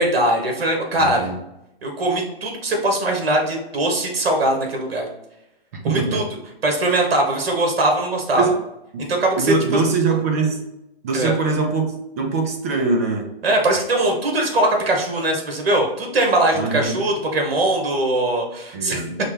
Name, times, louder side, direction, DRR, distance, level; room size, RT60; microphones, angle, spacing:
voice 1, 0.0-1.3 1.8-5.1 5.8-6.2 6.6-8.5 9.0-9.8 11.1-11.3 13.4-19.0, right 1 dB, 75° right, 2 dB, 1.3 m, -21 dB
voice 2, 1.0-1.3 5.8-6.2 8.4-8.5 8.9-9.1 9.4-10.6 11.0-13.3 16.5-17.0 18.7-19.2, right 4 dB, 15° right, 3 dB, 0.3 m, -22 dB
5.5 x 2.2 x 3.3 m, 0.89 s
hypercardioid pair, 145°, 30 cm